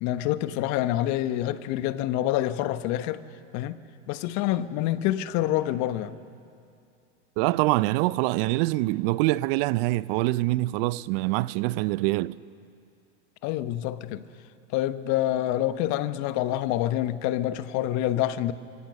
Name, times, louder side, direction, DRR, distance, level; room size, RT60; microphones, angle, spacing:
voice 1, 0.0-3.2 3.5-3.8 4.1-6.2 13.4-14.3 14.7-18.5, left 13 dB, 50° left, 1.2 m, -27 dB
voice 2, 7.4-12.4, right 19 dB, 55° right, 0.6 m, -25 dB
25.5 x 25.0 x 6.5 m
hypercardioid pair, 95°, 34 cm